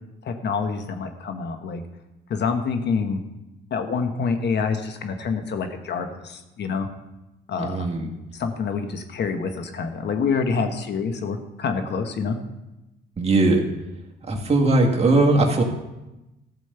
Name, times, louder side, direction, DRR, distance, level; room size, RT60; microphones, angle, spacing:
voice 1, 0.2-1.8 2.3-3.2 3.7-6.9 7.5-7.9 8.3-12.4, left 5 dB, 60° left, 7 dB, 1.2 m, -27 dB
voice 2, 7.6-8.1 13.2-13.6 14.3-15.6, right 2 dB, 30° right, 0 dB, 1.9 m, -19 dB
13.5 x 5.2 x 6.8 m, 0.98 s
cardioid pair, 90°, 20 cm